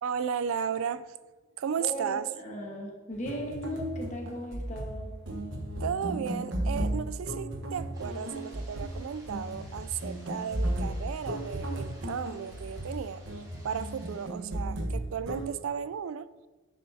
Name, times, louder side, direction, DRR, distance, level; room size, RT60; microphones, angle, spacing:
voice 1, 0.0-1.1 1.6-2.3 5.8-13.2 13.6-16.3, right 7 dB, 90° right, 0.4 m, -34 dB
voice 2, 1.8-5.1, equal, 35° left, 1.3 m, -37 dB
sound 1, 3.1-15.5, right 1 dB, 65° right, 1.2 m, -35 dB
sound 2, 7.9-14.3, right 1 dB, 20° right, 2.5 m, -56 dB
10.0 x 7.4 x 2.7 m
head